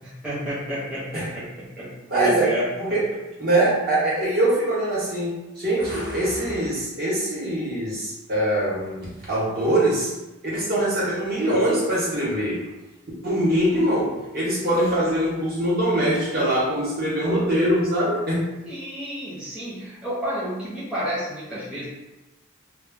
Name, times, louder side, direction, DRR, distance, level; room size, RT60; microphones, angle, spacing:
voice 1, 0.0-2.7 18.6-21.9, right 1 dB, 5° right, -11 dB, 0.7 m, -30 dB
voice 2, 2.1-2.5 2.8-3.0 3.4-10.1 10.4-12.6 13.2-18.5, right 1 dB, 45° right, -7 dB, 1.0 m, -23 dB
2.2 x 2.2 x 3.5 m, 1.0 s
head